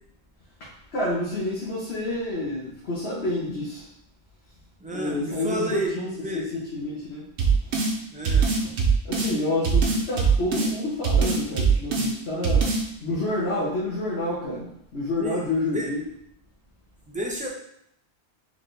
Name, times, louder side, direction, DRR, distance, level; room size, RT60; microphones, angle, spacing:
voice 1, 0.6-3.8 4.9-6.1 6.3-6.4 6.7-7.3 7.6-7.7 9.0-12.7 13.0-16.0, left 2 dB, 75° left, -6 dB, 1.3 m, -28 dB
voice 2, 4.8-6.4 8.1-8.5 15.2-15.4 15.7-15.9 17.1-17.5, equal, 10° right, 0 dB, 0.6 m, -31 dB
sound 1, 7.4-7.9 8.3-9.3 9.6-10.7 11.0-12.1 12.4-12.8, right 5 dB, 85° right, 1.1 m, -21 dB
4.1 x 3.7 x 3.3 m, 0.73 s
omnidirectional pair, 1.1 m